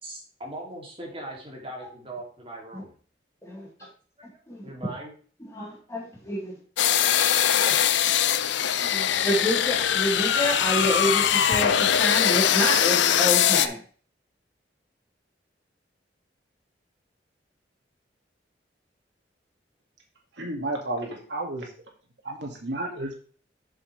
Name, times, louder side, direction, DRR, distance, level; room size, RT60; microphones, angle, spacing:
voice 1, 0.0-2.9 4.2-5.1, right 1 dB, 30° right, -2 dB, 2.7 m, -40 dB
voice 2, 5.5-6.5 7.0-7.9 8.8-13.8, left 1 dB, 15° left, -5 dB, 3.5 m, -28 dB
sound 1, 6.8-13.7, left 9 dB, 85° left, 0.5 m, -22 dB
voice 3, 20.4-21.7 22.2-23.1, right 1 dB, 85° right, 1 dB, 2.1 m, -32 dB
7.5 x 6.8 x 3.3 m, 0.42 s
head